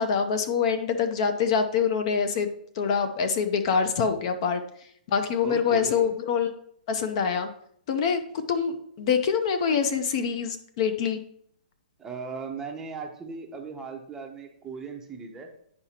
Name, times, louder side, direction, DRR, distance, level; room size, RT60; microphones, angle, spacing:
voice 1, 0.0-2.5 2.8-4.6 5.1-6.5 6.9-7.5 7.9-11.2, left 6 dB, 40° left, 8 dB, 0.7 m, -25 dB
voice 2, 5.4-6.1 12.0-15.5, right 5 dB, 10° right, 2 dB, 0.7 m, -38 dB
9.7 x 4.9 x 2.9 m, 0.67 s
hypercardioid pair, 160°, 5 cm